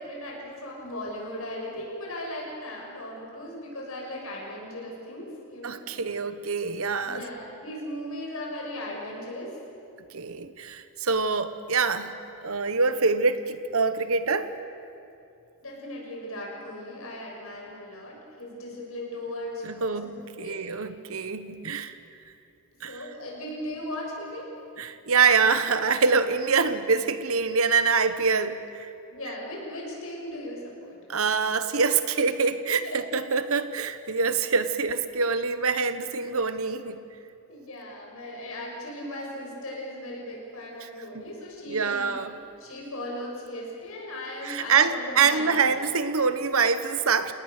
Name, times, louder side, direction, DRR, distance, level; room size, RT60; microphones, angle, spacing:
voice 1, 0.0-5.8 7.0-9.6 15.6-20.7 22.9-24.5 29.1-31.0 32.8-33.0 37.5-42.0 42.6-45.8, left 1 dB, 75° left, -1 dB, 6.7 m, -37 dB
voice 2, 5.6-7.2 10.1-12.2 12.4-14.5 19.6-22.0 22.8-23.0 24.8-28.9 31.1-37.0 41.1-41.2 41.7-42.3 44.4-47.3, right 5 dB, 75° right, 11 dB, 1.1 m, -25 dB
29.5 x 19.0 x 6.7 m, 2.7 s
head